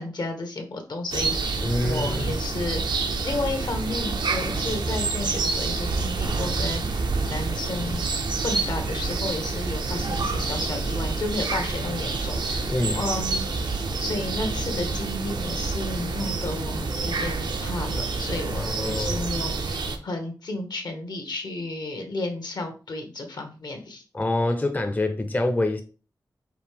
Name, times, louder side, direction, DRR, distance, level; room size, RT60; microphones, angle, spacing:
voice 1, 0.0-8.0 8.4-13.4 14.0-24.0, left 2 dB, 75° left, 1.0 m, -32 dB
sound 1, 1.1-20.0, right 3 dB, 85° right, 0.6 m, -28 dB
voice 2, 1.6-2.4 12.7-13.0 18.6-19.3 24.1-25.8, left 2 dB, 20° left, 0.5 m, -26 dB
5.0 x 2.7 x 3.4 m
wide cardioid pair, 85°, 7 cm